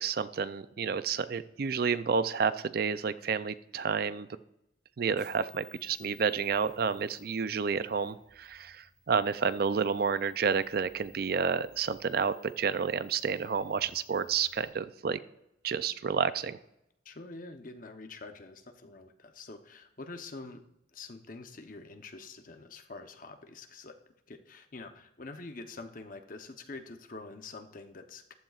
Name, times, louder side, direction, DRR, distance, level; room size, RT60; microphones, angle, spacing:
voice 1, 0.0-4.3 5.0-15.2 15.6-16.6, right 6 dB, 55° right, 14 dB, 0.4 m, -30 dB
sound 1, 5.1-14.7, left 3 dB, 5° right, 2.2 m, -59 dB
voice 2, 17.0-20.6 20.9-24.0 24.3-28.3, left 3 dB, 45° left, 6 dB, 0.9 m, -46 dB
14.5 x 12.0 x 2.4 m, 0.84 s
head